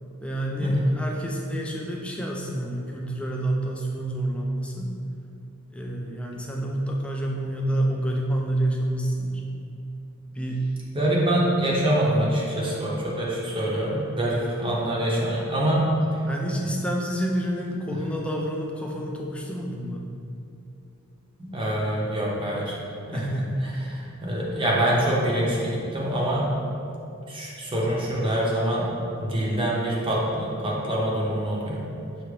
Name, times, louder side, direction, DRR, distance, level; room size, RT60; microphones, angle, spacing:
voice 1, 0.2-4.9 5.7-9.4 10.3-10.7 16.3-20.0 23.1-23.6, right 1 dB, 5° left, -1 dB, 0.3 m, -28 dB
voice 2, 10.9-15.8 21.4-22.8 23.1-23.2 23.6-26.5 27.3-28.9 29.2-31.8, right 1 dB, 25° right, -5 dB, 0.7 m, -25 dB
5.9 x 2.7 x 3.2 m, 2.7 s
head